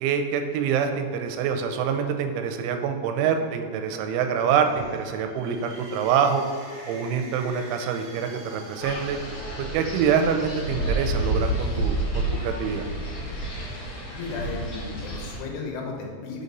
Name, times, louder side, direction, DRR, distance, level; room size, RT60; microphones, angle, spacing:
voice 1, 0.0-6.5 6.9-9.2 9.6-12.9, right 7 dB, 90° right, 6 dB, 3.0 m, -25 dB
sound 1, 4.2-10.2, right 2 dB, 70° right, 1.4 m, -46 dB
Sigh, 4.4-4.9, right 2 dB, 55° right, 3.1 m, -39 dB
Wind, 8.8-15.4, right 1 dB, 55° left, 2.2 m, -29 dB
voice 2, 14.1-16.4, left 4 dB, 80° left, 0 dB, 3.4 m, -34 dB
6.9 x 4.1 x 5.2 m, 2.1 s
omnidirectional pair, 5.4 m